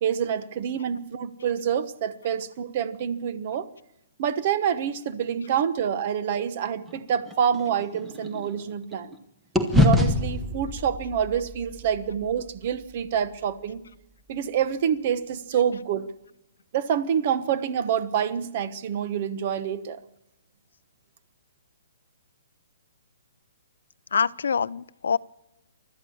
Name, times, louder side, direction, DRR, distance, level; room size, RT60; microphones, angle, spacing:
voice 1, 0.0-3.7 4.2-9.1 9.8-13.8 14.3-16.1 16.7-20.0, right 8 dB, 30° right, 1.1 m, -27 dB
sound 1, 6.9-9.2 9.5-13.8, left 2 dB, ahead, 1.0 m, -27 dB
voice 2, 24.1-25.2, left 6 dB, 80° left, 0.6 m, -25 dB
29.0 x 13.0 x 7.2 m
hypercardioid pair, 175°, 0 cm